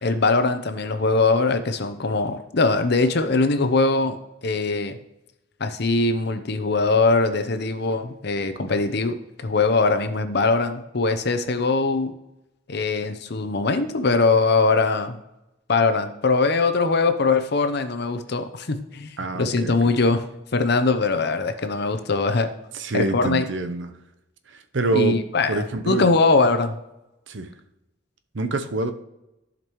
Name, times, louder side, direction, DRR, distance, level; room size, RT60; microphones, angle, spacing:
voice 1, 0.0-4.2 4.4-5.0 5.6-12.1 12.7-15.2 15.7-19.1 19.3-20.2 20.5-22.5 22.9-23.5 24.9-26.7, left 3 dB, 55° left, 9 dB, 0.7 m, -21 dB
voice 2, 19.2-19.7 22.7-24.0 24.5-25.2 25.5-26.1 27.3-27.5 28.3-28.9, right 3 dB, 65° right, 8 dB, 0.7 m, -26 dB
14.0 x 5.2 x 3.1 m, 0.92 s
head